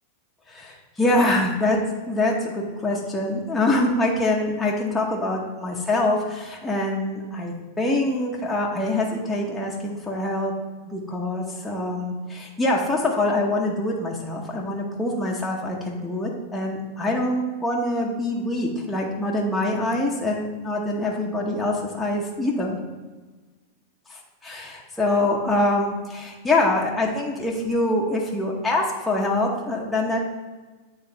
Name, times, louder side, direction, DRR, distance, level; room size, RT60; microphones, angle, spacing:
voice 1, 0.5-1.8 2.1-10.5 10.8-22.8 24.1-30.3, left 2 dB, 5° left, -3 dB, 0.9 m, -24 dB
8.8 x 3.2 x 3.9 m, 1.3 s
supercardioid pair, 135°, 0 cm